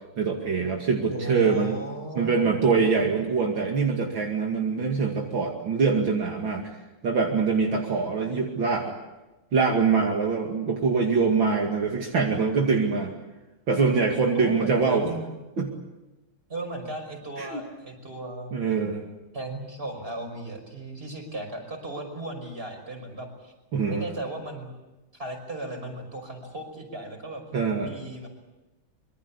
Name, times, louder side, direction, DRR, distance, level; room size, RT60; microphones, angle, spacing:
voice 1, 0.2-1.8 2.1-6.7 7.0-8.9 9.5-13.1 13.7-15.1 15.6-15.7 17.4-17.6 18.5-19.0 23.7-24.0 27.5-28.0, right 5 dB, 65° right, 1 dB, 3.1 m, -24 dB
voice 2, 1.1-2.7 14.3-15.2 16.5-18.6 19.3-23.5 23.8-24.7 25.1-27.4 27.8-28.3, right 2 dB, 25° right, 4 dB, 5.9 m, -36 dB
26.0 x 23.5 x 8.5 m, 1.1 s
omnidirectional pair, 2.3 m